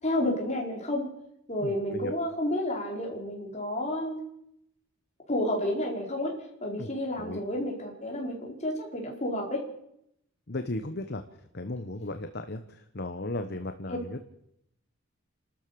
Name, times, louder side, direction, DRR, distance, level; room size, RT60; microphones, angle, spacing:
voice 1, 0.0-1.1 1.5-4.2 5.3-6.3 6.6-9.6, left 1 dB, 30° left, 0 dB, 4.8 m, -30 dB
voice 2, 1.6-2.1 6.8-6.9 7.2-7.4 10.5-11.2 11.5-14.4, left 2 dB, 50° left, 8 dB, 1.1 m, -36 dB
29.5 x 13.0 x 6.8 m, 0.77 s
head